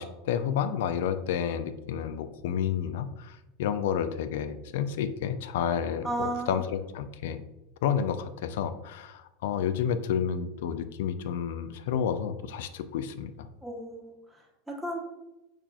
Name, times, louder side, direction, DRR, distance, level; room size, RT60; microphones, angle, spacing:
voice 1, 0.0-7.4 7.8-13.3, left 8 dB, 75° left, 11 dB, 0.3 m, -30 dB
voice 2, 6.0-6.7 13.6-15.0, right 1 dB, 5° right, -2 dB, 1.0 m, -34 dB
5.6 x 2.4 x 2.3 m, 0.94 s
hypercardioid pair, 110°, 0 cm